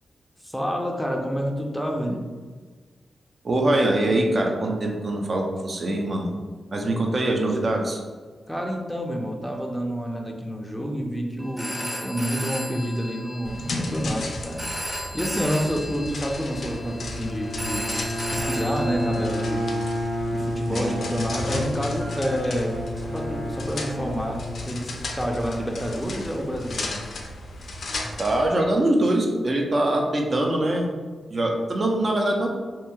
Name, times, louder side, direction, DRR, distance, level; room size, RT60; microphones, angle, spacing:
voice 1, 0.4-2.2 8.5-14.6 15.1-17.9 18.3-19.7 20.3-22.8 23.1-27.0, equal, ahead, 0 dB, 0.5 m, -28 dB
voice 2, 3.4-6.3 6.7-8.0 20.7-21.0 28.2-30.9 31.3-32.5, right 1 dB, 50° right, 1 dB, 0.5 m, -23 dB
Telephone, 11.4-19.2, equal, 20° right, 1.4 m, -35 dB
sound 1, 13.4-28.5, left 2 dB, 70° left, 0.4 m, -35 dB
Bowed string instrument, 16.6-25.1, left 1 dB, 85° right, 0.9 m, -31 dB
2.8 x 2.7 x 2.3 m, 1.4 s
cardioid pair, 55°, 0 cm